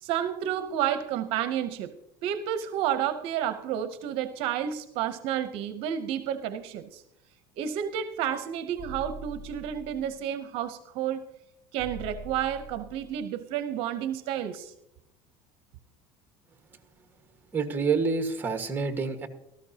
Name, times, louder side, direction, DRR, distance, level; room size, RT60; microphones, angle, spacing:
voice 1, 0.0-1.9 2.2-7.0 7.6-11.2 11.7-14.7, right 10 dB, 65° right, 11 dB, 0.8 m, -30 dB
sound 1, 8.8-10.2 11.8-13.2, equal, 30° left, 3.2 m, -43 dB
voice 2, 17.5-19.3, right 4 dB, 20° right, 5 dB, 1.5 m, -27 dB
17.5 x 13.5 x 2.8 m, 0.83 s
cardioid pair, 130°, 10 cm